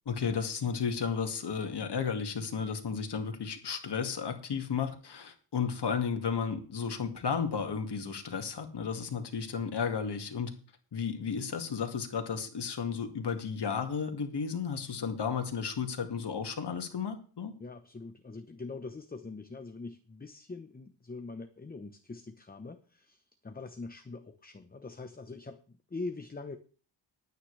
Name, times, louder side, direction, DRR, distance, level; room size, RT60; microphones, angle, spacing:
voice 1, 0.1-10.5 10.9-17.5, left 6 dB, 65° left, 5 dB, 2.1 m, -33 dB
voice 2, 17.6-25.6 25.9-26.6, left 3 dB, 20° left, 8 dB, 0.9 m, -43 dB
19.5 x 9.3 x 3.3 m, 0.40 s
wide cardioid pair, 100°, 44 cm